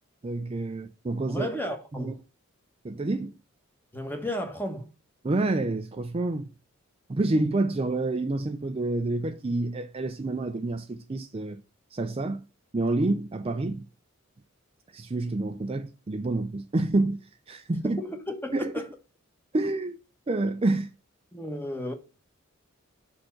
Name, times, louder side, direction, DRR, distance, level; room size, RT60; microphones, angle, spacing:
voice 1, 0.2-1.5 1.9-2.1 2.8-3.4 5.2-6.5 7.1-11.6 11.9-12.4 12.7-13.8 14.9-17.2 17.5-18.0 18.5-18.7 19.5-20.0 20.3-20.9, right 2 dB, 25° right, 0.4 m, -28 dB
voice 2, 1.3-2.2 3.9-4.9 17.8-18.9 21.3-21.9, left 1 dB, 10° left, 1.2 m, -33 dB
5.8 x 4.4 x 6.4 m
head